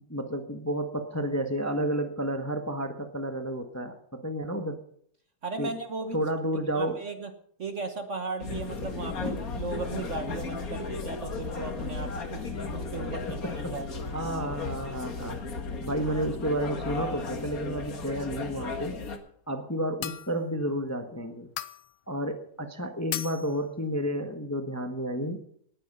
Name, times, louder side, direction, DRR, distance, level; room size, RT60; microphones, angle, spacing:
voice 1, 0.0-4.8 5.6-5.7 6.1-7.0 13.4-13.7 14.1-15.4 15.8-19.0 19.5-21.5 22.1-25.4, right 1 dB, 10° left, 6 dB, 1.1 m, -31 dB
voice 2, 5.4-6.2 6.5-7.3 7.6-14.0, right 3 dB, 45° right, 8 dB, 1.4 m, -36 dB
sound 1, 8.4-19.2, left 4 dB, 50° left, 2.1 m, -35 dB
sound 2, 20.0-20.5 21.6-22.0 23.1-23.6, left 12 dB, 90° left, 1.5 m, -36 dB
18.5 x 9.9 x 5.5 m, 0.63 s
omnidirectional pair, 2.1 m